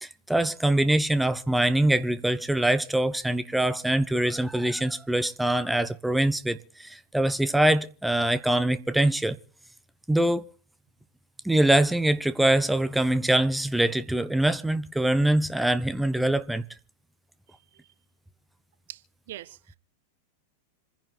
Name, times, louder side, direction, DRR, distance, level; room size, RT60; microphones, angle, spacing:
voice 1, 0.0-9.4 10.1-10.4 11.4-16.6, right 1 dB, 5° right, 0.7 m, -24 dB
voice 2, 19.3-19.8, right 13 dB, 55° right, 0.7 m, -42 dB
27.0 x 10.5 x 4.0 m
figure-of-eight pair, 90°, 0 cm